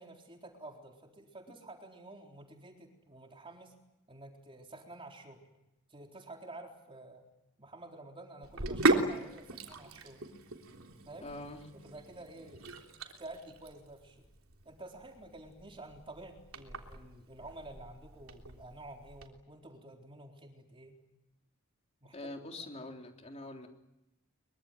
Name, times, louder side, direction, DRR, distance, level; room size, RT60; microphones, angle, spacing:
voice 1, 0.0-3.7 4.1-5.5 5.9-7.2 7.6-10.2 11.1-11.3 11.7-12.9 13.2-14.3 14.6-21.0 22.0-22.3 22.6-22.7, right 2 dB, 25° right, 2 dB, 4.0 m, -50 dB
Sink (filling or washing), 8.4-19.3, right 2 dB, 70° right, 3.4 m, -37 dB
voice 2, 11.2-11.6 22.1-23.7, left 2 dB, 30° left, 3 dB, 3.5 m, -44 dB
24.0 x 23.5 x 9.1 m, 0.89 s
head